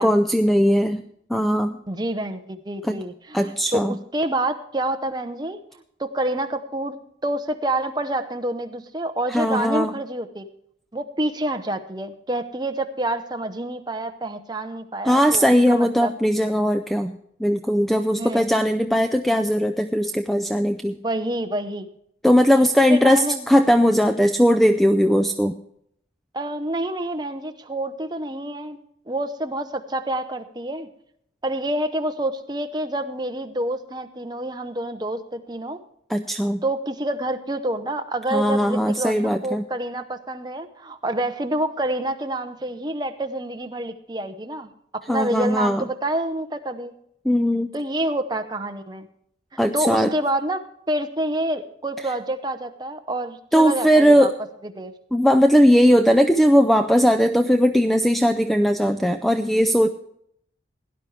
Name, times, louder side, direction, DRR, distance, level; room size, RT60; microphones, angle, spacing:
voice 1, 0.0-1.8 2.8-3.0 3.3-3.9 9.3-9.9 15.0-21.0 22.2-25.6 36.1-36.6 38.3-39.6 45.1-45.8 47.2-47.7 49.6-50.1 53.5-54.4 55.1-59.9, equal, ahead, 7 dB, 0.4 m, -19 dB
voice 2, 1.9-5.6 6.0-7.0 7.2-10.5 10.9-16.1 18.2-18.5 21.0-21.9 22.8-23.5 26.3-28.8 29.1-30.9 31.4-35.8 36.6-46.9 47.7-49.1 49.5-50.6 50.9-54.3 54.8-54.9, right 1 dB, 20° right, 7 dB, 0.8 m, -28 dB
17.5 x 11.0 x 3.3 m, 0.70 s
head